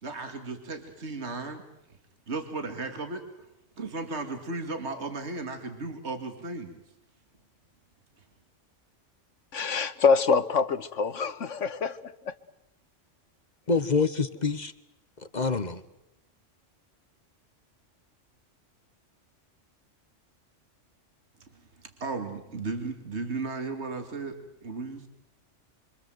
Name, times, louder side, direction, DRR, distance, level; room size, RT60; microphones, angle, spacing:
voice 1, 0.0-1.6 2.3-3.2 3.8-6.8 22.0-25.1, right 3 dB, 60° right, 2.7 m, -35 dB
voice 2, 9.5-12.3, left 5 dB, 75° left, 1.6 m, -25 dB
voice 3, 13.7-14.7 15.3-15.8, left 4 dB, 35° left, 1.2 m, -26 dB
28.5 x 25.0 x 7.9 m
omnidirectional pair, 1.3 m